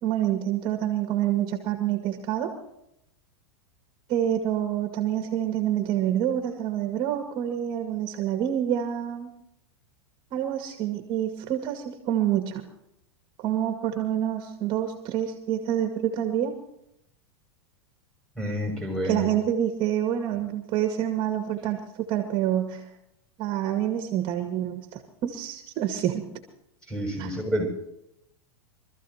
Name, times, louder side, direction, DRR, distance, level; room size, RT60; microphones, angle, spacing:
voice 1, 0.0-2.6 4.1-9.3 10.3-12.6 13.4-16.5 19.0-22.9 23.4-26.3 27.2-27.3, right 11 dB, 40° right, 4 dB, 2.0 m, -27 dB
voice 2, 18.4-19.3 26.9-27.7, equal, 5° left, 0 dB, 6.6 m, -29 dB
25.5 x 14.5 x 2.9 m, 0.80 s
supercardioid pair, 140°, 14 cm